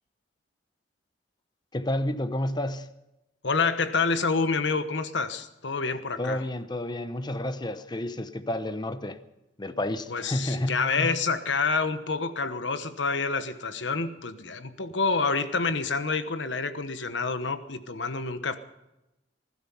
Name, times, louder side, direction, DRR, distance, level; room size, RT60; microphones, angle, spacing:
voice 1, 1.7-2.9 6.2-9.2 9.6-11.1, left 1 dB, 25° left, 0.8 m, -30 dB
voice 2, 3.4-6.4 10.1-18.6, left 4 dB, 75° left, 1.1 m, -28 dB
20.0 x 12.5 x 5.6 m
head